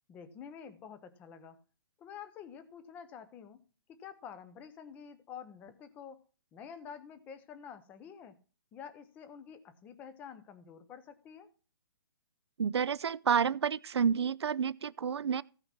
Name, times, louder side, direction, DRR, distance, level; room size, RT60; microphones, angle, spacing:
voice 1, 0.1-1.6 2.0-3.6 3.9-6.2 6.5-8.4 8.7-11.5, left 7 dB, 10° left, 0.7 m, -49 dB
voice 2, 12.6-15.4, right 7 dB, 80° right, 0.6 m, -29 dB
15.5 x 5.8 x 5.9 m
hypercardioid pair, 165°, 14 cm